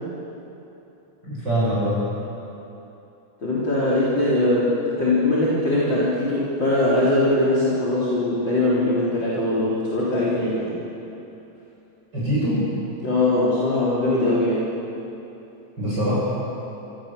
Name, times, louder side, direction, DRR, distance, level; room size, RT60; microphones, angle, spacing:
voice 1, 1.2-2.0 12.1-12.7 15.8-16.1, equal, 35° right, -8 dB, 8.5 m, -23 dB
voice 2, 3.4-10.8 13.0-14.8, left 1 dB, 35° left, -7 dB, 4.3 m, -21 dB
28.0 x 25.0 x 6.9 m, 3.0 s
omnidirectional pair, 3.5 m